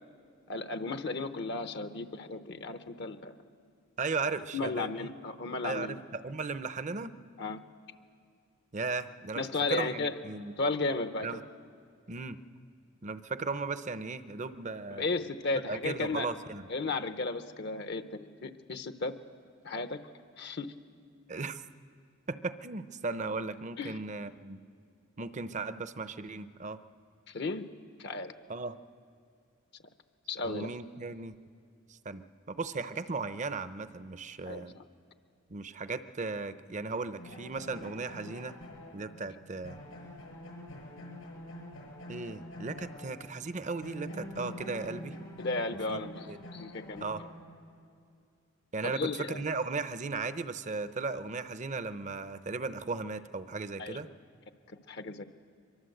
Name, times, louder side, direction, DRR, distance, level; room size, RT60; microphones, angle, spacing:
voice 1, 0.5-3.3 4.5-6.0 7.4-7.6 9.4-10.1 10.6-11.3 14.9-16.3 16.7-19.1 19.6-20.0 20.4-20.7 23.8-24.0 27.3-27.7 28.0-28.3 30.3-30.7 34.5-34.8 45.4-46.3 46.5-47.1 48.8-49.4 53.8-54.0 54.9-55.2, left 3 dB, 55° left, 9 dB, 0.8 m, -34 dB
voice 2, 4.0-5.1 5.6-7.2 8.7-9.4 9.7-10.5 11.2-11.4 12.1-12.4 13.0-15.1 15.7-16.6 21.3-21.6 22.3-24.6 25.2-26.8 28.5-28.8 30.4-31.3 31.9-34.7 35.5-38.6 38.9-39.8 42.1-45.2 45.9-46.4 47.0-47.2 48.7-54.1, right 3 dB, 35° right, 12 dB, 0.6 m, -36 dB
sound 1, 37.2-43.5 43.8-47.8, left 1 dB, 85° left, 6.3 m, -46 dB
24.0 x 22.5 x 7.9 m, 2.4 s
head